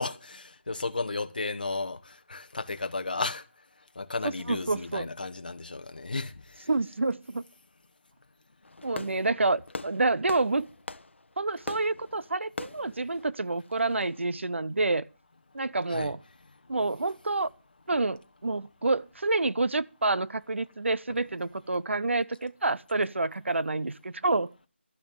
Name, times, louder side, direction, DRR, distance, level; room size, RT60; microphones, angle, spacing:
voice 1, 0.0-3.4 4.0-6.7 15.9-16.1, left 3 dB, 45° left, 1.1 m, -34 dB
voice 2, 4.2-5.1 6.7-7.4 8.8-10.7 11.4-15.1 15.5-16.2 16.7-17.5 17.9-24.5, right 3 dB, 80° right, 0.7 m, -28 dB
Fireworks, 8.6-14.2, left 2 dB, 70° left, 0.9 m, -42 dB
12.5 x 6.2 x 8.6 m
figure-of-eight pair, 175°, 7 cm